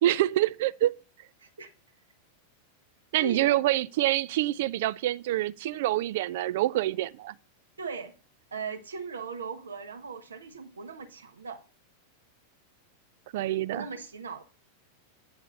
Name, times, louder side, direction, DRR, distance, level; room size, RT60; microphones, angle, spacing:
voice 1, 0.0-0.9 3.1-7.3 13.3-13.9, right 14 dB, 55° right, 0.3 m, -26 dB
voice 2, 1.4-1.7 3.2-3.5 7.8-8.1 8.5-11.6 13.7-14.4, right 5 dB, 70° right, 0.9 m, -38 dB
8.6 x 3.5 x 5.4 m
figure-of-eight pair, 90°, 0 cm